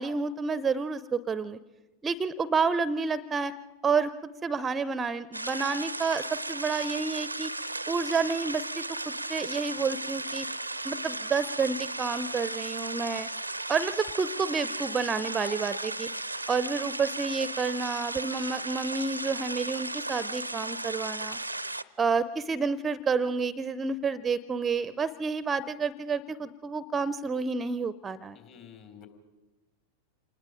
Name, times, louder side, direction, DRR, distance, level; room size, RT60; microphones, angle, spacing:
voice 1, 0.0-1.6 2.0-3.5 3.8-6.2 6.5-7.5 7.9-10.5 10.8-13.3 13.7-16.1 16.5-21.4 22.0-28.4, right 5 dB, 20° right, 17 dB, 0.6 m, -29 dB
sound 1, 5.3-21.8, right 2 dB, 85° right, 0.6 m, -35 dB
voice 2, 28.3-29.1, left 8 dB, 45° left, 5 dB, 3.6 m, -50 dB
27.0 x 20.0 x 5.1 m, 1.1 s
figure-of-eight pair, 90°, 0 cm